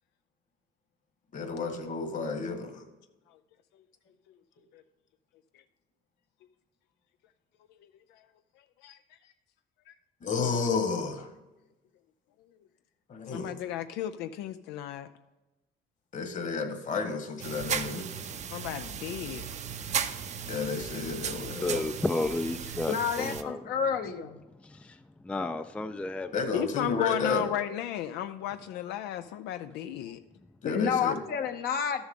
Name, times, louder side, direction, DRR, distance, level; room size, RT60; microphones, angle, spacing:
voice 1, 1.3-2.8 10.2-11.3 13.1-13.5 16.1-18.1 20.5-21.9 26.3-27.5 30.6-31.2, left 4 dB, 50° left, 1.5 m, -32 dB
voice 2, 7.8-8.2 8.8-9.0 9.2-9.3 9.9-10.0 13.3-15.1 18.5-19.5 26.5-30.2, left 11 dB, 90° left, 0.4 m, -34 dB
sound 1, 17.4-23.4, right 7 dB, 45° right, 0.6 m, -36 dB
voice 3, 21.1-23.7 24.6-26.4, left 2 dB, 5° left, 0.3 m, -33 dB
voice 4, 22.9-24.4 30.6-32.0, left 7 dB, 65° left, 1.0 m, -29 dB
12.5 x 7.0 x 3.7 m
cardioid pair, 110°, 17 cm